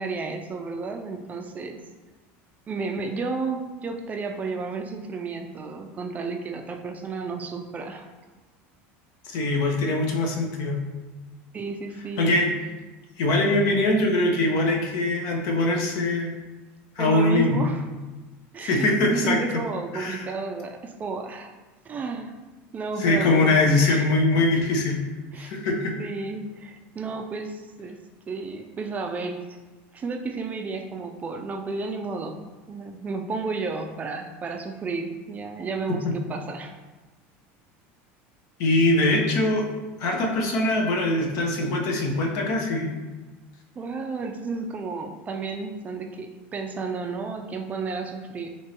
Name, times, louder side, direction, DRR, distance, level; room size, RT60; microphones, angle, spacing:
voice 1, 0.0-1.8 2.7-8.1 11.5-12.4 17.0-17.9 18.5-21.5 21.9-22.3 22.7-24.1 25.3-25.5 26.0-28.0 28.3-29.6 29.9-36.8 43.8-48.5, right 4 dB, 25° right, 4 dB, 0.3 m, -32 dB
voice 2, 9.2-10.8 12.2-12.5 13.2-16.3 17.0-17.6 18.6-19.4 19.9-20.3 23.0-25.0 25.4-26.0 35.9-36.2 38.6-39.6 40.0-42.9, left 2 dB, 65° left, 1 dB, 0.8 m, -22 dB
4.6 x 2.9 x 2.8 m, 1.2 s
supercardioid pair, 125°, 6 cm